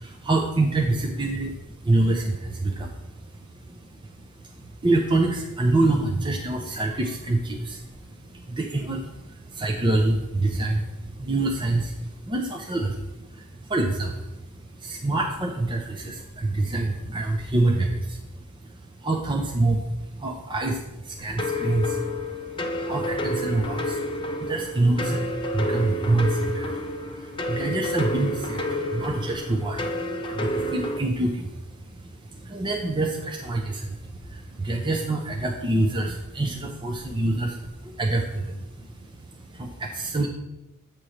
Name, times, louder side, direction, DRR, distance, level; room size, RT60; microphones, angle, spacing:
voice 1, 0.0-40.3, right 2 dB, 20° right, 1 dB, 0.6 m, -27 dB
sound 1, 21.4-31.0, left 1 dB, 25° left, 0.6 m, -29 dB
8.3 x 3.0 x 6.3 m, 0.98 s
head